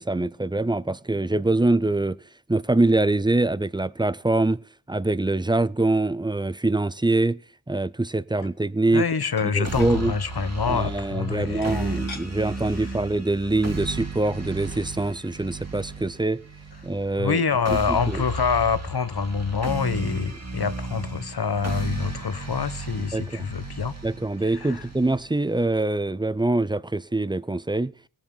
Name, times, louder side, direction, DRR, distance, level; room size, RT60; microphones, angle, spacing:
voice 1, 0.0-2.2 2.5-4.6 4.9-7.4 7.7-9.0 9.4-10.1 10.7-16.4 16.8-17.4 17.9-18.2 23.1-23.5 24.0-27.9, right 2 dB, 10° right, 0.5 m, -24 dB
sound 1, 8.4-8.6 9.4-10.0 11.6-12.3 12.8-12.9 13.2-13.5 14.4-14.5 14.7-14.9, left 4 dB, 85° left, 1.8 m, -42 dB
voice 2, 8.9-12.0 12.8-12.9 17.2-23.9 24.4-24.8, left 6 dB, 55° left, 1.1 m, -26 dB
sound 2, 9.6-25.6, right 3 dB, 35° right, 2.2 m, -34 dB
18.0 x 7.4 x 5.4 m
cardioid pair, 40°, 46 cm